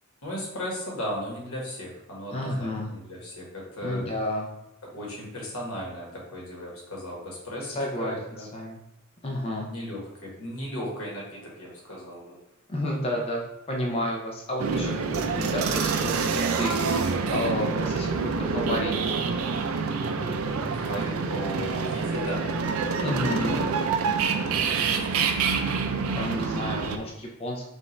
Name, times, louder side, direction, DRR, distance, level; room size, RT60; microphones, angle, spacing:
voice 1, 0.2-4.0 4.9-7.7 8.0-8.5 9.7-12.4 20.7-22.4, equal, 90° left, -3 dB, 1.5 m, -36 dB
voice 2, 2.3-2.9 3.8-4.5 7.7-8.8 9.2-9.7 12.7-19.2 23.0-23.7 26.1-27.6, left 1 dB, 25° left, -1 dB, 0.5 m, -31 dB
sound 1, 14.6-27.0, right 5 dB, 75° right, 0.4 m, -27 dB
5.3 x 2.5 x 3.2 m, 0.89 s
head